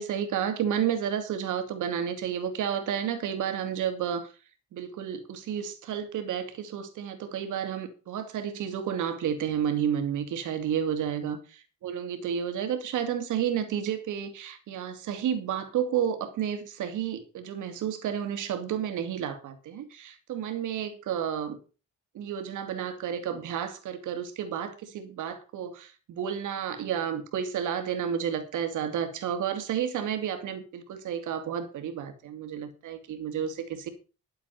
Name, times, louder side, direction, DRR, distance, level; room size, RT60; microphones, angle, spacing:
voice 1, 0.0-4.3 4.7-21.6 22.1-33.9, right 8 dB, 80° right, 2.7 m, -31 dB
12.5 x 7.5 x 5.9 m
cardioid pair, 90°, 30 cm